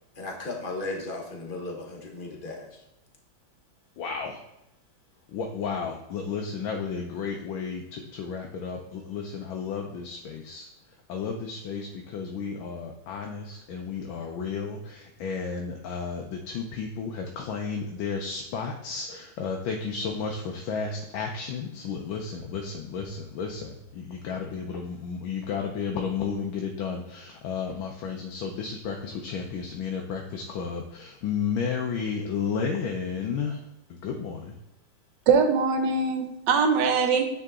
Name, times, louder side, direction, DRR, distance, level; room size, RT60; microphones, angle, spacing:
voice 1, 0.1-2.8, left 2 dB, 30° left, 0 dB, 1.1 m, -36 dB
voice 2, 4.0-4.4 5.3-10.7 11.1-33.6 33.9-34.5, left 5 dB, 85° left, 2 dB, 1.5 m, -32 dB
voice 3, 35.3-37.3, right 5 dB, 70° right, 7 dB, 1.4 m, -22 dB
9.2 x 4.0 x 3.6 m, 0.92 s
omnidirectional pair, 2.1 m